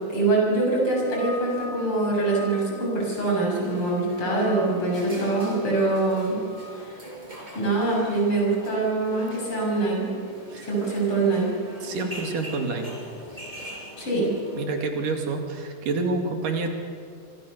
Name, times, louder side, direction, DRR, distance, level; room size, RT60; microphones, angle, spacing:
voice 1, 0.1-6.4 6.8-7.0 7.5-10.1 10.6-11.5 14.0-14.3, right 2 dB, 40° left, -2 dB, 7.8 m, -24 dB
sound 1, 0.9-3.8 4.1-4.9 5.3-6.8, left 3 dB, 65° left, 5.9 m, -42 dB
sound 2, 3.6-14.6, equal, 10° right, 5.2 m, -42 dB
voice 2, 11.8-12.9 14.5-16.7, right 3 dB, 85° right, 4 dB, 4.0 m, -28 dB
26.0 x 25.5 x 6.9 m, 2.4 s
omnidirectional pair, 3.7 m